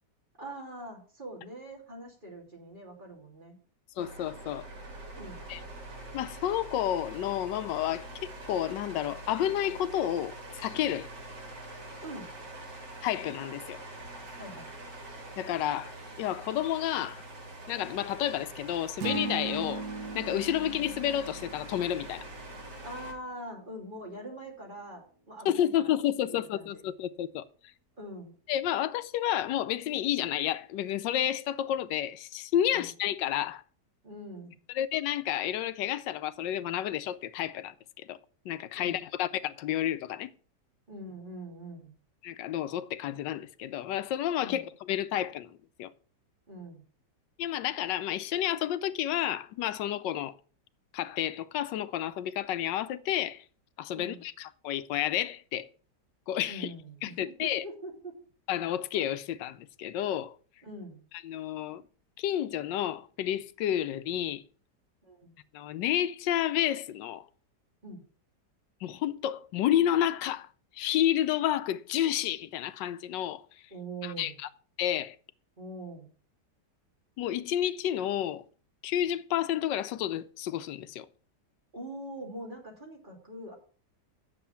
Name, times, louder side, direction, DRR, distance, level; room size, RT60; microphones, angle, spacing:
voice 1, 0.4-3.6 5.2-5.4 12.0-12.3 14.4-14.7 22.8-25.9 26.2-26.8 28.0-28.3 32.7-32.9 34.0-34.5 38.7-39.0 40.9-41.9 44.4-44.7 46.5-46.8 53.9-54.2 56.5-58.2 60.6-61.0 65.0-65.3 67.8-68.0 73.7-74.4 75.6-76.1 81.7-83.5, right 1 dB, 30° right, 3.0 m, -43 dB
voice 2, 4.0-4.7 5.5-5.6 6.1-11.1 13.0-13.8 15.4-17.2 17.7-19.8 20.1-22.3 25.4-27.4 28.5-33.6 34.7-37.7 38.1-38.2 38.4-40.3 42.2-45.9 47.4-50.3 50.9-53.4 53.8-55.7 56.3-56.7 57.0-57.6 58.5-60.3 61.2-61.8 62.2-64.4 65.5-67.3 68.8-70.5 70.7-73.4 74.0-74.3 74.8-75.2 77.2-78.4 78.8-81.1, left 11 dB, 90° left, 1.3 m, -30 dB
sound 1, 4.0-23.1, right 2 dB, 75° right, 3.1 m, -44 dB
sound 2, 19.0-23.3, right 4 dB, 60° right, 1.5 m, -38 dB
9.3 x 7.0 x 5.6 m
omnidirectional pair, 1.9 m